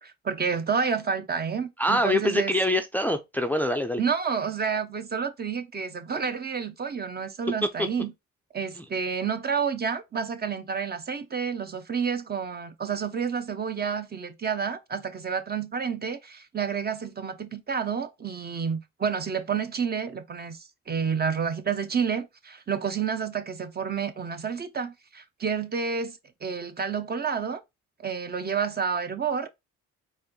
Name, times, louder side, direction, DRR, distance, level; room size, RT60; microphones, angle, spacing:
voice 1, 0.0-2.5 4.0-8.1 8.5-27.6 28.0-29.5, right 6 dB, 30° right, 0.7 m, -29 dB
voice 2, 1.8-4.0 7.8-7.9 8.8-8.9, left 1 dB, 5° left, 0.5 m, -25 dB
4.3 x 2.6 x 3.8 m
cardioid pair, 90°, 30 cm